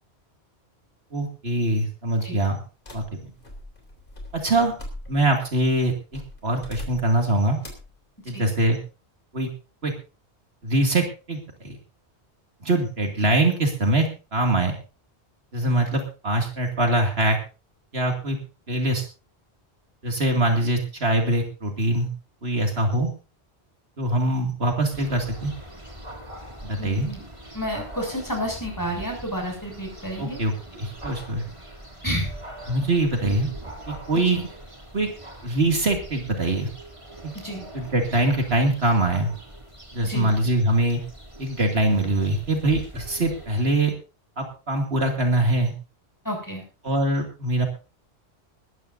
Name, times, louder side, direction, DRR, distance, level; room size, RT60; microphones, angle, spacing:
voice 1, 1.1-2.6 2.9-3.0 4.3-4.7 5.1-7.6 8.3-8.8 9.3-9.5 9.8-9.9 10.6-11.8 12.6-14.7 15.5-17.4 17.9-18.4 18.7-19.0 20.0-22.1 22.4-23.1 24.0-25.5 26.6-27.1 30.2-31.4 32.7-33.5 33.9-34.5 34.9-35.1 35.4-36.7 37.2-37.3 37.7-39.3 39.9-41.0 41.4-43.9 44.4-45.7 46.8-47.7, right 1 dB, 70° right, 3 dB, 2.7 m, -23 dB
sound 1, 2.8-5.4 6.1-7.2 7.6-8.0, left 1 dB, 50° left, 3.8 m, -40 dB
sound 2, 24.9-43.7, right 1 dB, 30° right, 2.9 m, -42 dB
voice 2, 26.8-27.2 27.5-30.4 32.0-32.3 37.4-37.6 40.0-40.3 46.2-46.6, equal, 15° left, 1 dB, 7.1 m, -30 dB
20.0 x 14.0 x 2.7 m, 0.33 s
omnidirectional pair, 1.1 m